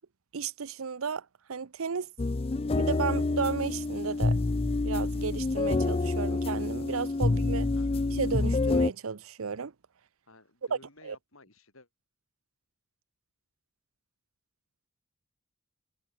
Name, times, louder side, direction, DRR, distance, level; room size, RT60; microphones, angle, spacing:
voice 1, 0.3-2.1 2.7-4.4 4.8-7.7 8.1-9.7 11.0-11.2, right 5 dB, 75° right, 0.7 m, -33 dB
sound 1, 2.2-8.9, left 3 dB, 30° left, 0.5 m, -27 dB
voice 2, 10.3-11.9, left 2 dB, 75° left, 5.4 m, -55 dB
head